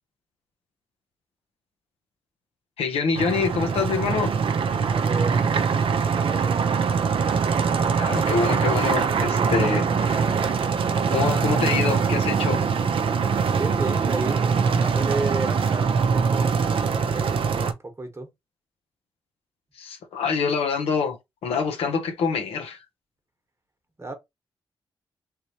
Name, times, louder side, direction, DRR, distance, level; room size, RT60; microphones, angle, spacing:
voice 1, 2.8-4.3 7.9-10.3 11.1-12.6 19.8-22.8, left 5 dB, 85° left, 0.8 m, -26 dB
sound 1, 3.1-17.7, right 5 dB, 65° right, 0.5 m, -23 dB
voice 2, 4.7-5.5 6.0-6.6 13.5-14.4 14.8-18.3 24.0-24.1, right 2 dB, 30° right, 1.1 m, -33 dB
3.4 x 3.0 x 2.7 m
supercardioid pair, 45°, 10 cm